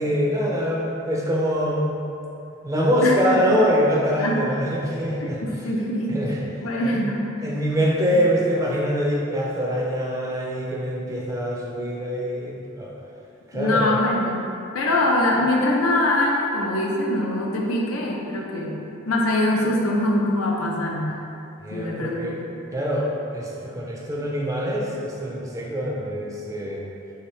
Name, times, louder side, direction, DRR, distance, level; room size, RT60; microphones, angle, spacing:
voice 1, 0.0-2.0 2.6-5.6 6.1-6.4 6.8-7.0 7.4-12.9 13.5-14.0 21.6-22.4 22.7-26.8, equal, 15° right, -3 dB, 0.3 m, -24 dB
voice 2, 5.2-6.2 6.6-7.2 8.1-8.3 13.5-18.8 19.0-21.2 21.7-22.6, left 1 dB, 90° left, -1 dB, 0.5 m, -23 dB
3.5 x 2.8 x 3.1 m, 2.8 s
head